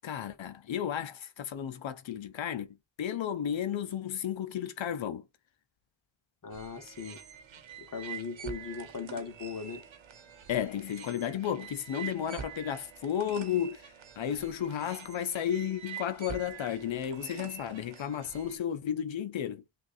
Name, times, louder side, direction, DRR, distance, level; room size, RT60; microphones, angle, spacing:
voice 1, 0.0-2.7 3.0-5.2 10.5-19.6, left 9 dB, 75° left, 0.7 m, -33 dB
voice 2, 6.4-7.2 7.9-9.8, left 5 dB, 45° left, 0.9 m, -38 dB
sound 1, 6.5-18.6, right 8 dB, 75° right, 1.0 m, -46 dB
6.1 x 2.5 x 2.5 m
cardioid pair, 50°, 47 cm